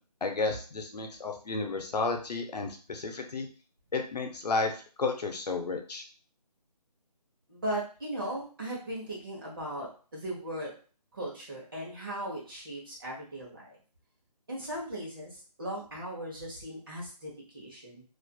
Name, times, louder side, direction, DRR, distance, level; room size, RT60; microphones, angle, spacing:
voice 1, 0.2-3.5 3.9-4.7 5.0-6.0, left 3 dB, 75° left, 3 dB, 0.6 m, -32 dB
voice 2, 7.5-10.7 11.1-13.7 14.5-18.0, right 1 dB, 35° right, -4 dB, 0.9 m, -38 dB
2.5 x 2.4 x 2.2 m, 0.39 s
figure-of-eight pair, 170°, 21 cm